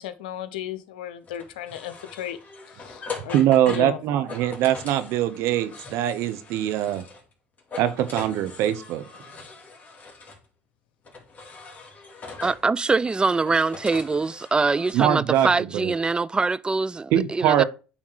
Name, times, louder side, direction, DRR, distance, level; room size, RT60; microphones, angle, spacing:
voice 1, 0.0-2.4 2.8-3.4 3.7-4.0, left 10 dB, 90° left, 0.8 m, -35 dB
sound 1, 1.3-7.3 7.6-10.4 11.1-12.7 13.3-14.9, left 4 dB, 35° left, 2.6 m, -41 dB
voice 2, 3.3-7.0 7.8-9.0 14.9-15.9 17.1-17.6, right 11 dB, 70° right, 0.9 m, -22 dB
voice 3, 12.4-17.6, right 3 dB, 20° right, 0.4 m, -23 dB
8.6 x 3.7 x 4.6 m
hypercardioid pair, 75°, 5 cm